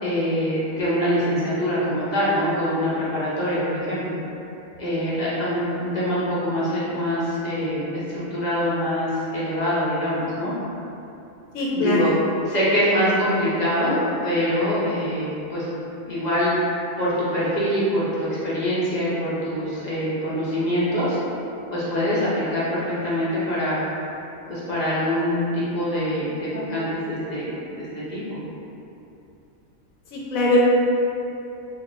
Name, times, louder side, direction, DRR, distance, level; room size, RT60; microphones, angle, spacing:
voice 1, 0.0-4.2 4.8-10.5 11.7-12.1 12.5-14.0 14.2-15.6 16.1-16.5 17.0-21.2 21.7-23.9 24.5-28.4, equal, 45° left, -9 dB, 0.6 m, -24 dB
voice 2, 11.5-12.1 30.1-30.6, left 2 dB, 85° left, -5 dB, 1.1 m, -21 dB
2.3 x 2.2 x 3.8 m, 2.8 s
omnidirectional pair, 1.4 m